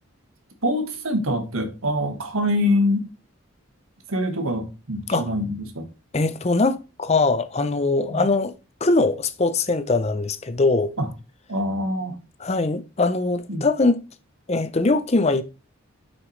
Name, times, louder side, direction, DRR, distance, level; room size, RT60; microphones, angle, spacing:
voice 1, 0.6-3.1 4.1-5.9 8.1-8.3 11.0-11.1 11.5-12.2 13.5-13.7, left 1 dB, 80° right, 1.7 m, -24 dB
voice 2, 6.1-8.5 8.8-10.9 12.4-14.0 14.5-15.4, left 3 dB, 30° left, 0.6 m, -21 dB
7.2 x 6.1 x 3.2 m
head